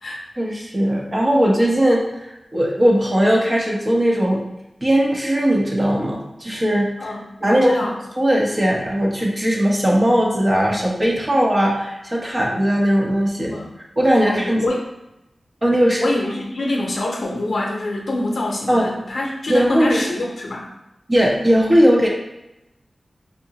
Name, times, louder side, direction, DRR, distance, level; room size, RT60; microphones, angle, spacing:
voice 1, 0.4-4.4 4.8-7.2 7.4-7.8 8.2-13.5 14.0-14.6 15.6-16.1 18.7-18.9 19.5-20.0 21.1-22.1, equal, 25° right, -2 dB, 0.7 m, -18 dB
voice 2, 7.0-8.0 13.5-13.7 14.2-14.8 15.8-20.7, left 2 dB, 70° left, -1 dB, 0.6 m, -25 dB
4.7 x 2.1 x 2.7 m, 0.92 s
wide cardioid pair, 90°, 0 cm